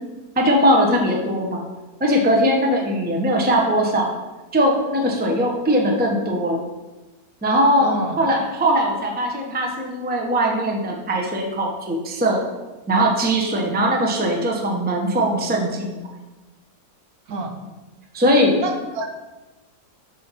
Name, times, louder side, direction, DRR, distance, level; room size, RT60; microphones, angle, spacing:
voice 1, 0.4-1.6 2.0-4.1 4.5-6.6 7.4-12.4 12.9-16.0 18.1-18.6, equal, 10° right, 0 dB, 0.7 m, -20 dB
voice 2, 7.8-8.2 17.3-17.5 18.6-19.1, right 2 dB, 70° right, 4 dB, 1.3 m, -27 dB
8.6 x 3.7 x 5.7 m, 1.1 s
omnidirectional pair, 1.8 m